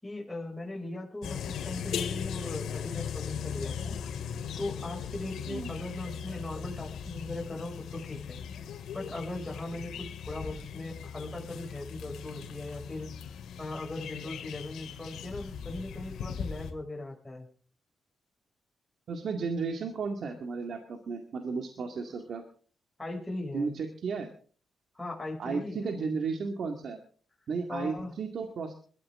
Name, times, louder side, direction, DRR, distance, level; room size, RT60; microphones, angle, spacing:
voice 1, 0.0-4.0 4.6-8.4 8.9-17.5 21.9-22.0 23.0-23.7 24.9-26.1 27.7-28.1, left 2 dB, 15° left, -1 dB, 6.1 m, -39 dB
sound 1, 1.2-16.7, left 7 dB, 85° left, 2.2 m, -38 dB
voice 2, 19.1-22.4 23.5-24.3 25.4-27.0 27.5-28.7, right 5 dB, 65° right, 5 dB, 2.1 m, -34 dB
21.5 x 14.0 x 3.7 m, 0.44 s
cardioid pair, 75°, 0 cm